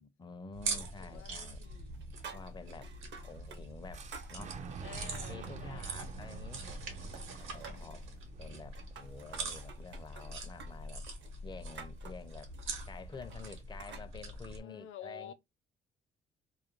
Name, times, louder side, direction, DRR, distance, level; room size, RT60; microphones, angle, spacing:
voice 1, 0.0-1.6 2.3-2.9 3.2-4.6 5.3-6.7 7.4-8.1 8.4-11.1 11.4-12.5 12.9-15.3, left 4 dB, 20° left, 0.4 m, -49 dB
sound 1, 0.5-14.6, right 3 dB, 90° right, 0.9 m, -43 dB
voice 2, 0.7-1.9 2.5-2.9 3.1-3.2 4.8-6.1 6.9-7.4 14.6-15.3, left 9 dB, 80° left, 0.5 m, -51 dB
sound 2, 0.8-1.4 1.6-3.6 3.9-5.7 6.1-6.9 7.1-8.0 8.6-14.1, right 5 dB, 65° right, 0.7 m, -52 dB
Boom, 3.9-9.8, right 5 dB, 40° right, 0.4 m, -48 dB
2.4 x 2.2 x 2.9 m
cardioid pair, 90°, 20 cm